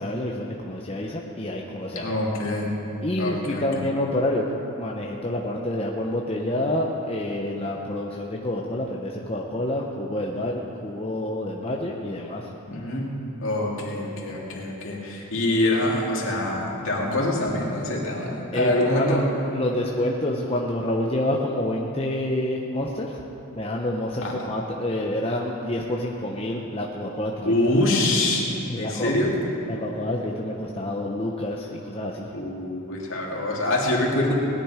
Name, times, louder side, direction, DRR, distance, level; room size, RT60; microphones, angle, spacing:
voice 1, 0.0-2.2 3.0-4.5 4.8-12.5 18.5-19.3 19.5-23.2 23.5-27.5 28.7-29.1 29.7-32.3, left 1 dB, 25° left, -1 dB, 0.8 m, -28 dB
voice 2, 2.0-2.7 3.2-3.6 12.7-13.1 13.4-19.2 24.2-24.3 27.4-28.5 28.8-29.3 32.3-34.3, left 1 dB, 65° left, -3 dB, 2.5 m, -25 dB
19.0 x 10.5 x 4.9 m, 3.0 s
head